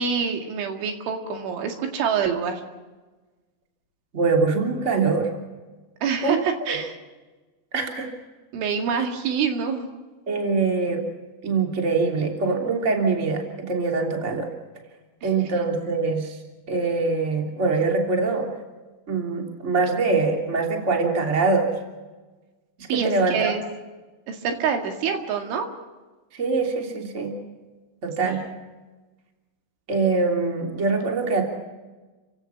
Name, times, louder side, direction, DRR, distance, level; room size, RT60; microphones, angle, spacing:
voice 1, 0.0-2.6 6.0-7.0 8.5-9.9 15.2-15.3 22.9-23.6 24.3-25.7 28.2-28.4, right 6 dB, 80° right, 4 dB, 4.5 m, -26 dB
voice 2, 4.1-5.3 6.2-6.4 7.7-8.1 10.3-11.0 11.4-14.5 15.2-16.4 16.7-18.5 19.1-21.7 22.9-23.5 26.3-27.4 28.0-28.4 29.9-31.4, right 4 dB, 20° right, 2 dB, 2.5 m, -23 dB
30.0 x 16.5 x 5.8 m, 1.2 s
omnidirectional pair, 5.4 m